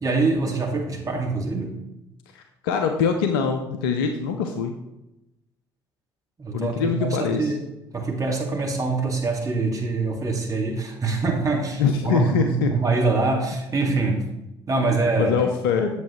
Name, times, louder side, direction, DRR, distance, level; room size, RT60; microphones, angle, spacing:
voice 1, 0.0-1.8 6.4-7.6 7.9-14.2 14.7-15.4, right 3 dB, 30° right, -1 dB, 2.3 m, -24 dB
voice 2, 2.3-4.7 6.5-7.5 11.8-12.7 15.2-15.9, left 6 dB, 80° left, 6 dB, 0.6 m, -23 dB
8.3 x 7.4 x 3.1 m, 0.91 s
hypercardioid pair, 55°, 12 cm